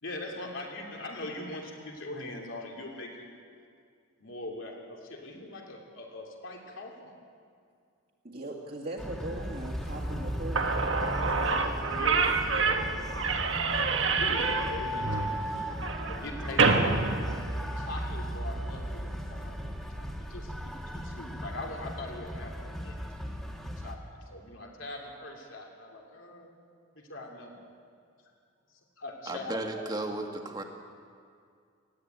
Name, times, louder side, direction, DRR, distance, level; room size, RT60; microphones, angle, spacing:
voice 1, 0.0-3.3 4.2-7.1 11.9-12.9 14.2-15.3 15.5-15.7 16.0-17.0 17.7-19.6 19.9-23.0 23.8-26.5 26.9-27.6 28.7-29.8, left 1 dB, 70° left, 0 dB, 3.2 m, -41 dB
voice 2, 8.2-10.7 11.2-12.5 12.9-13.2, right 2 dB, 45° right, -2 dB, 1.9 m, -41 dB
sound 1, 9.0-24.0, equal, ahead, 1.5 m, -36 dB
Slam / Squeak, 10.2-10.3 10.5-18.0, right 4 dB, 65° right, 1.4 m, -28 dB
voice 3, 29.3-30.6, right 2 dB, 20° right, 3 dB, 1.7 m, -34 dB
19.0 x 15.5 x 9.5 m, 2.3 s
head